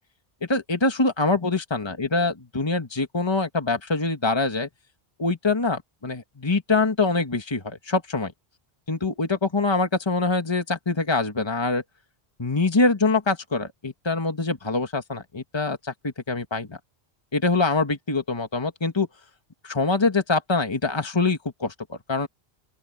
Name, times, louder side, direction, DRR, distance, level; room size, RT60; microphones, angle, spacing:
voice 1, 0.5-4.7 5.2-8.3 8.9-11.8 12.4-16.8 17.3-19.1 19.6-22.3, left 3 dB, 25° left, 1.7 m, -24 dB
open air
omnidirectional pair, 1.1 m